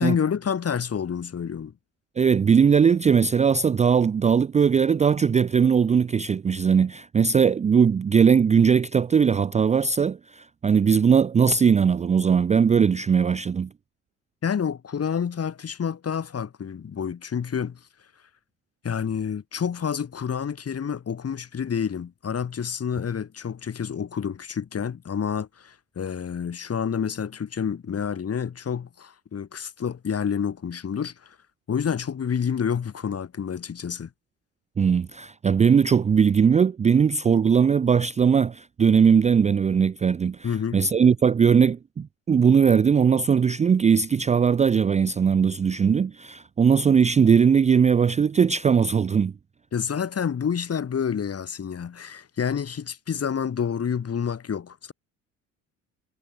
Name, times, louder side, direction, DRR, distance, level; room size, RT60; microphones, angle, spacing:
voice 1, 0.0-1.7 14.4-17.8 18.8-31.3 31.7-34.1 40.4-40.8 49.7-54.9, left 7 dB, 35° left, 6.6 m, -28 dB
voice 2, 2.2-13.7 34.8-49.3, right 6 dB, 15° right, 0.5 m, -20 dB
figure-of-eight pair, 60°, 40 cm